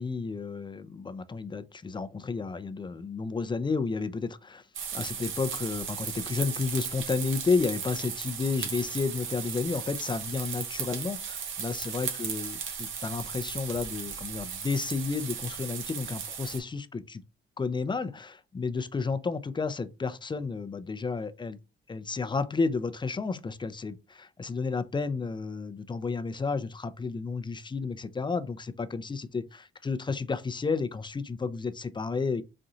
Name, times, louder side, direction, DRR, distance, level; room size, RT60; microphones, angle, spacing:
voice 1, 0.0-4.6 4.9-17.2 17.6-21.6 21.9-32.4, left 4 dB, 25° left, 0.5 m, -32 dB
sound 1, 4.7-16.6, right 7 dB, 85° right, 1.1 m, -36 dB
4.3 x 2.5 x 3.8 m
cardioid pair, 90°, 20 cm